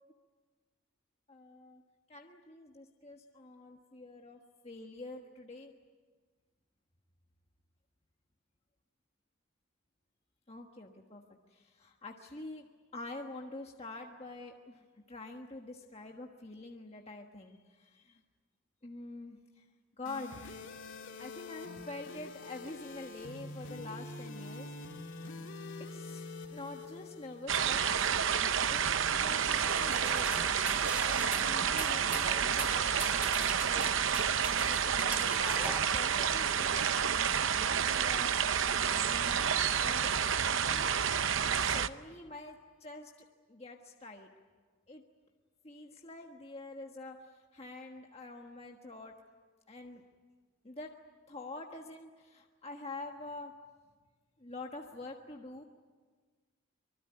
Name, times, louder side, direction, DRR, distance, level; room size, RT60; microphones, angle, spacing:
voice 1, 1.3-1.8 2.1-5.7 10.5-11.2 11.5-12.7 12.9-18.2 18.8-19.6 20.0-20.7 21.2-25.4 25.9-28.0 28.7-30.3 31.0-33.2 33.6-34.3 34.6-36.8 37.2-38.4 38.7-39.5 39.7-40.1 40.6-41.0 41.5-43.1 43.5-44.3 44.9-45.0 45.6-49.1 49.7-50.0 50.6-50.9 51.3-53.5 54.4-55.6, left 2 dB, 30° left, 2 dB, 1.4 m, -46 dB
sound 1, 20.1-28.0, left 3 dB, 60° left, 3.0 m, -46 dB
sound 2, 27.5-41.9, right 7 dB, 60° right, 0.8 m, -29 dB
sound 3, 29.5-36.0, right 2 dB, 5° right, 0.8 m, -42 dB
25.0 x 23.5 x 9.8 m, 1.5 s
head